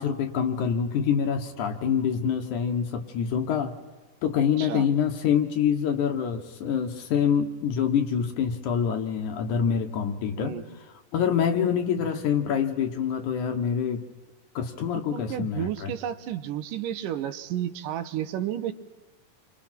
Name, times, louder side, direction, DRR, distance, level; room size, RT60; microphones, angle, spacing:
voice 1, 0.0-3.7 4.2-10.6 11.1-14.0 14.5-15.9, left 7 dB, 70° left, 5 dB, 2.7 m, -26 dB
voice 2, 14.9-18.7, right 11 dB, 90° right, 11 dB, 2.7 m, -32 dB
29.5 x 24.5 x 4.4 m, 1.3 s
omnidirectional pair, 3.7 m